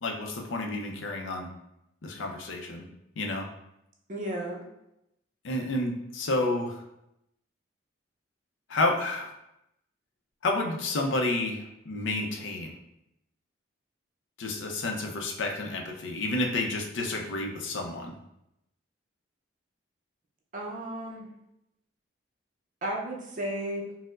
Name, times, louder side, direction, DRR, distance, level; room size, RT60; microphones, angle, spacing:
voice 1, 0.0-1.5 2.0-2.9 3.2-3.5 5.4-6.8 8.7-9.3 10.4-12.7 14.4-18.1, left 2 dB, 70° left, 2 dB, 0.5 m, -30 dB
voice 2, 4.1-4.6 20.5-21.3 22.8-23.9, right 1 dB, 40° right, -1 dB, 0.5 m, -33 dB
4.3 x 2.0 x 2.4 m, 0.84 s
head